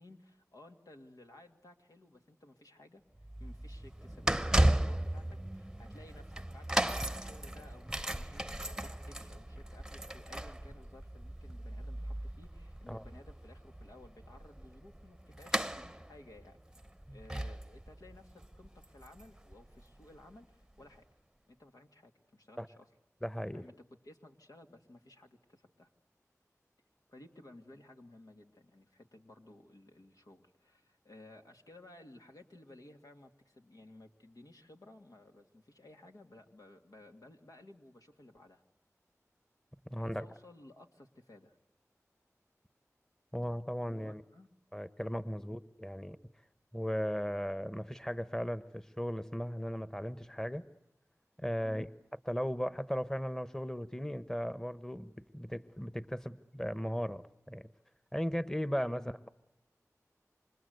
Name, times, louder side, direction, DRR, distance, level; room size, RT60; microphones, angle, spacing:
voice 1, 0.0-3.0 3.4-16.6 17.1-21.1 21.5-22.9 23.5-23.7 24.0-25.9 27.1-38.6 39.9-41.6 43.9-44.5 45.3-45.5 51.6-51.8 58.9-59.1, left 1 dB, 85° left, 3 dB, 2.4 m, -57 dB
sound 1, 3.2-20.2 20.8-20.9, right 1 dB, 10° right, 0.9 m, -36 dB
voice 2, 23.2-23.6 39.9-40.3 43.3-44.2 44.7-46.2 46.7-50.6 51.4-51.9 52.3-57.7 58.1-59.3, equal, 10° left, 13 dB, 1.3 m, -37 dB
28.0 x 25.5 x 8.0 m, 0.87 s
wide cardioid pair, 40°, 6 cm